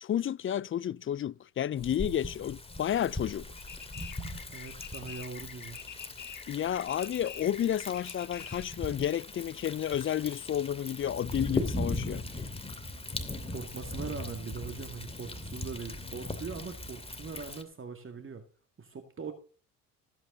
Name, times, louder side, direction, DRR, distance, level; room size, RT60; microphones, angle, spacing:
voice 1, 0.0-3.5 6.5-12.2, left 10 dB, 35° left, 0.4 m, -31 dB
Thunder, 1.8-17.6, left 2 dB, 15° left, 2.6 m, -39 dB
sound 1, 3.6-8.8, left 9 dB, 55° left, 2.1 m, -46 dB
voice 2, 4.5-5.8 13.5-18.4 18.8-19.3, right 5 dB, 35° right, 2.2 m, -41 dB
16.0 x 8.7 x 3.9 m
supercardioid pair, 80°, 37 cm